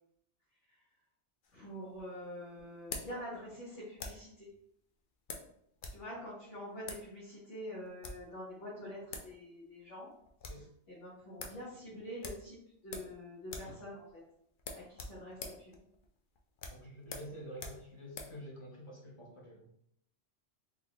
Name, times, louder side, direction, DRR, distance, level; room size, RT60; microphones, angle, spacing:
sound 1, 1.4-4.4 5.3-6.0 6.3-6.4 6.8-7.1 7.8-8.3 8.8-8.9 9.1-9.3 9.6-9.7 10.1-10.7 11.0-11.1 11.4-11.6 12.2-13.2 13.4-13.8 14.0-14.2 14.6-18.4, left 3 dB, 55° left, 0.6 m, -46 dB
voice 1, 1.5-4.3 5.9-9.0 9.2-10.1 11.0-12.5 12.8-14.0 14.7-14.8 15.1-15.3, equal, 75° left, -10 dB, 1.7 m, -45 dB
voice 2, 16.7-19.7, equal, 30° left, -4 dB, 0.9 m, -48 dB
3.7 x 3.3 x 2.4 m, 0.72 s
omnidirectional pair, 1.2 m